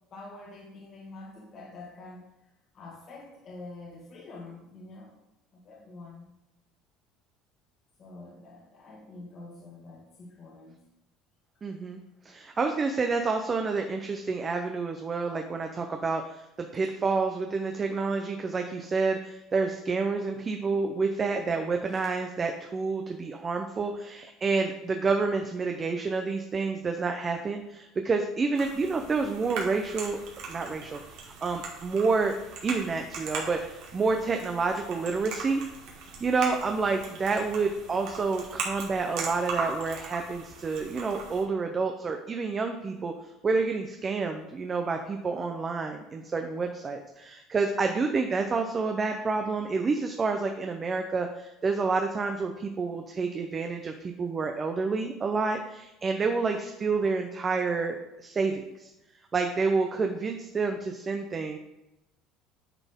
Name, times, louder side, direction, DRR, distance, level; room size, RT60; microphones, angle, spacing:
voice 1, 0.1-5.2 5.5-6.3 8.0-10.8, left 2 dB, 45° left, -2 dB, 1.7 m, -46 dB
voice 2, 11.6-30.2 30.5-32.4 32.6-35.6 36.2-43.1 43.4-58.9 59.3-61.6, right 4 dB, 30° right, 4 dB, 0.6 m, -29 dB
sound 1, 28.5-41.4, right 4 dB, 70° right, 1.8 m, -39 dB
8.9 x 4.1 x 3.6 m, 0.95 s
supercardioid pair, 105°, 0 cm